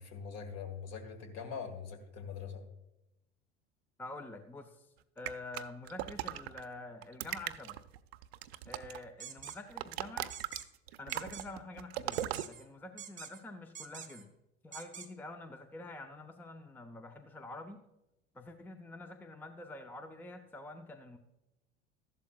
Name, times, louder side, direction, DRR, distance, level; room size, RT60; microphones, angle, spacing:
voice 1, 0.0-2.6, left 6 dB, 50° left, 5 dB, 1.8 m, -43 dB
voice 2, 4.0-4.9 5.2-7.8 8.7-10.3 11.0-14.3 14.6-17.8 18.3-21.2, left 2 dB, 5° left, 8 dB, 0.6 m, -47 dB
sound 1, 5.3-6.6 7.0-9.1 9.4-12.4, right 14 dB, 65° right, 0.5 m, -39 dB
sound 2, 9.2-9.6 10.3-10.7 11.1-11.5 12.1-12.6 13.0-13.4 13.7-14.2 14.7-15.1, right 8 dB, 20° right, 0.9 m, -46 dB
13.5 x 11.5 x 2.4 m, 0.92 s
figure-of-eight pair, 70°, 34 cm